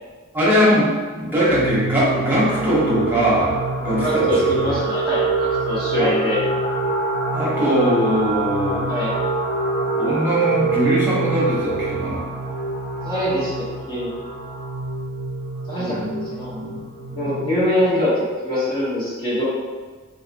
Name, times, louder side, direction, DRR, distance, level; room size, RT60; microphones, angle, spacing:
voice 1, 0.3-0.9 1.2-4.7 6.0-6.1 7.3-8.8 10.0-12.2 15.8-16.2 16.5-16.8 17.9-18.0, equal, 10° right, -7 dB, 1.0 m, -21 dB
sound 1, 1.5-17.8, right 3 dB, 40° left, 1.2 m, -25 dB
voice 2, 4.0-6.4 8.9-9.2 13.0-13.5 13.9-14.1 15.7-16.0 16.2-16.6 17.1-18.1 18.4-19.4, left 1 dB, 25° left, -9 dB, 0.8 m, -23 dB
4.1 x 2.8 x 2.5 m, 1.4 s
head